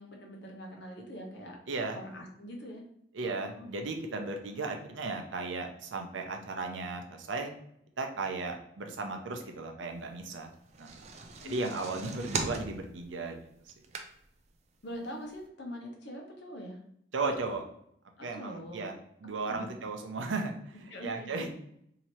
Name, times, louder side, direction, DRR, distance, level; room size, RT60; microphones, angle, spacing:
voice 1, 0.0-1.6 1.9-2.8 3.2-3.7 11.4-11.6 14.8-16.8 18.2-18.9 19.3-19.7 20.9-21.5, equal, 65° left, 1 dB, 0.9 m, -43 dB
voice 2, 1.7-2.0 3.1-7.5 8.0-10.5 10.8-10.9 11.4-13.5 17.1-17.6 18.2-18.9 19.2-21.5, right 3 dB, 85° right, 4 dB, 0.7 m, -35 dB
sound 1, 10.5-14.5 14.9-15.0 15.3-15.4, right 4 dB, 35° right, 0.4 m, -38 dB
2.9 x 2.8 x 4.4 m, 0.72 s
head